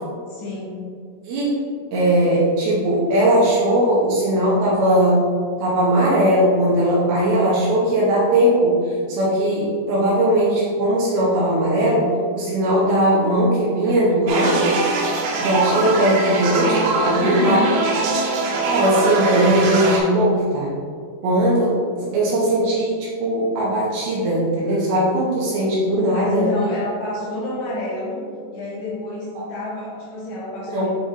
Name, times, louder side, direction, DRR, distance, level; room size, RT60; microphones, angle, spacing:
voice 1, 0.3-0.9 17.1-17.7 26.1-28.3 28.5-30.9, left 1 dB, 70° left, -7 dB, 3.6 m, -29 dB
voice 2, 1.3-1.6 1.9-5.2 5.6-14.8 15.4-17.6 18.6-20.7 21.2-26.5 30.7-30.9, right 1 dB, 70° right, -6 dB, 2.6 m, -19 dB
sound 1, 14.3-20.0, right 3 dB, 90° right, 3.3 m, -22 dB
8.7 x 4.4 x 3.0 m, 2.2 s
omnidirectional pair, 5.2 m